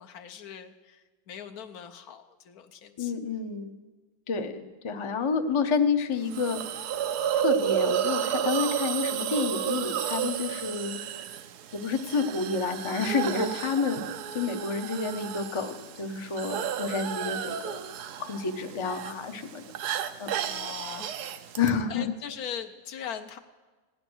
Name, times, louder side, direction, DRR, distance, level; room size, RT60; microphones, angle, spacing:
voice 1, 0.0-3.1 4.4-4.7 16.5-16.7 20.4-21.4 21.9-23.4, left 8 dB, 75° left, 7 dB, 1.2 m, -41 dB
voice 2, 3.0-3.8 4.3-6.6 7.4-11.0 11.7-14.0 14.3-17.8 18.2-19.6 20.2-20.4 21.6-22.1, left 5 dB, 35° left, 6 dB, 0.5 m, -29 dB
Hiss, 6.3-21.7, right 10 dB, 90° right, 1.2 m, -32 dB
16.0 x 10.0 x 6.1 m, 1.3 s
omnidirectional pair, 1.6 m